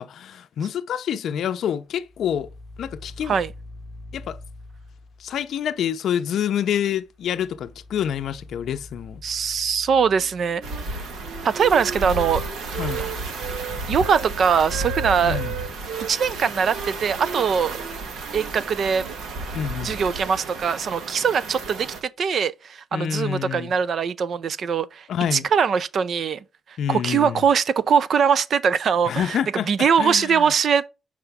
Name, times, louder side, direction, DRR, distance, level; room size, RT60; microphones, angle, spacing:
voice 1, 0.0-2.5 2.8-3.4 4.1-4.4 5.2-9.2 12.8-13.0 15.2-15.6 19.5-20.0 22.9-23.7 25.1-25.5 26.8-27.4 29.1-29.7 30.0-30.5, left 9 dB, 60° left, 0.5 m, -27 dB
sound 1, 2.0-5.7 7.0-11.4, left 2 dB, 5° right, 0.8 m, -44 dB
voice 2, 9.2-10.6 11.4-12.4 13.0-13.1 13.6-15.4 16.1-17.8 18.3-19.0 19.8-25.0 25.3-26.4 26.9-29.4 29.7-30.9, right 6 dB, 45° right, 0.4 m, -22 dB
Wind instrument woodwind instrument, 10.0-10.9 11.2-14.3 14.6-16.1 16.7-19.2, right 7 dB, 70° right, 2.1 m, -35 dB
sound 2, 10.6-22.0, right 2 dB, 90° right, 1.5 m, -32 dB
6.8 x 4.8 x 3.5 m
cardioid pair, 170°, 0 cm